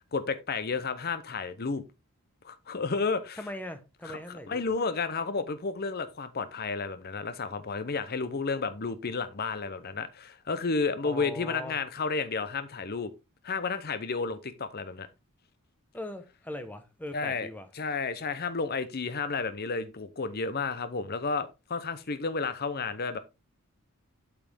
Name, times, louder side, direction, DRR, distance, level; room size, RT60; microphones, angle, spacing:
voice 1, 0.1-1.8 2.4-3.4 4.0-13.1 13.4-15.1 17.1-17.5 17.7-23.2, left 4 dB, 45° left, 0.7 m, -32 dB
voice 2, 3.4-4.6 11.0-11.8 15.9-17.7, left 1 dB, 10° left, 1.0 m, -40 dB
8.3 x 5.7 x 3.5 m
head